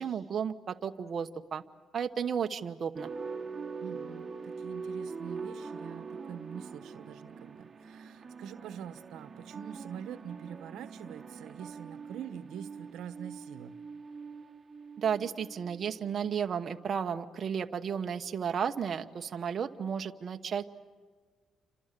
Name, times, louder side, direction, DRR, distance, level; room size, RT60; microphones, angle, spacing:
voice 1, 0.0-1.6 1.9-3.1 15.0-20.6, right 7 dB, 50° right, 5 dB, 1.1 m, -33 dB
sound 1, 3.0-16.3, right 5 dB, 30° right, 2.6 m, -43 dB
voice 2, 3.8-13.8, right 9 dB, 85° right, 11 dB, 1.3 m, -45 dB
30.0 x 26.0 x 6.8 m, 1.5 s
cardioid pair, 90°, 0 cm